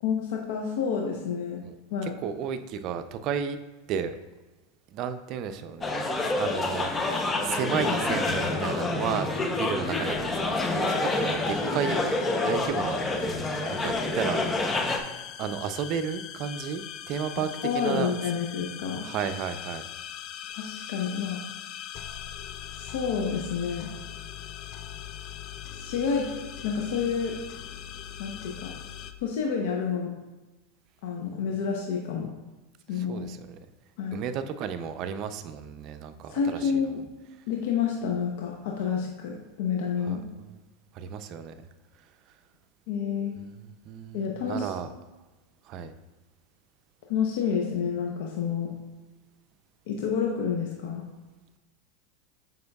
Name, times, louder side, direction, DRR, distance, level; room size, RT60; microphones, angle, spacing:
voice 1, 0.0-1.6 1.9-2.1 17.6-19.1 20.5-21.4 22.7-23.9 25.7-26.3 26.6-27.4 28.2-28.7 29.2-30.1 31.0-32.3 32.9-33.3 34.0-34.2 36.3-37.0 37.5-40.2 42.9-43.3 44.1-44.7 47.1-48.7 49.9-51.0, left 6 dB, 70° left, 0 dB, 0.8 m, -29 dB
voice 2, 2.0-3.6 3.9-4.2 4.9-14.4 15.4-18.1 18.9-19.9 32.9-33.6 34.1-36.8 40.0-40.6 40.9-41.5 43.4-44.9 45.7-45.9, right 7 dB, 45° right, 10 dB, 0.5 m, -33 dB
sound 1, 5.8-15.0, left 2 dB, 20° left, 0.7 m, -28 dB
sound 2, 10.9-29.1, left 10 dB, 45° left, 0.4 m, -41 dB
7.7 x 5.3 x 2.4 m, 1.2 s
hypercardioid pair, 115°, 0 cm